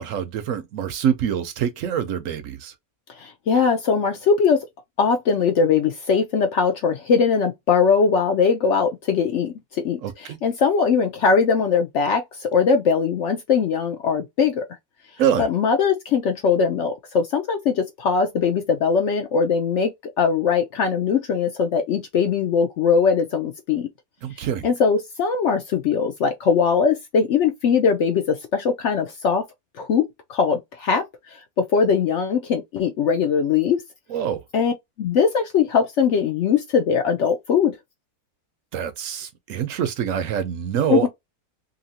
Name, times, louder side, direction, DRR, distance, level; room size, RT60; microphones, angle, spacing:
voice 1, 0.0-2.7 10.0-10.1 15.2-15.5 24.2-24.7 34.1-34.4 38.7-41.1, right 8 dB, 70° right, 0.9 m, -25 dB
voice 2, 3.1-4.7 5.0-14.6 15.4-19.9 20.2-23.9 24.3-29.4 29.8-30.0 30.3-33.8 34.5-34.7 35.0-37.7 40.9-41.1, left 6 dB, 65° left, 0.7 m, -21 dB
2.8 x 2.6 x 2.7 m
omnidirectional pair, 1.6 m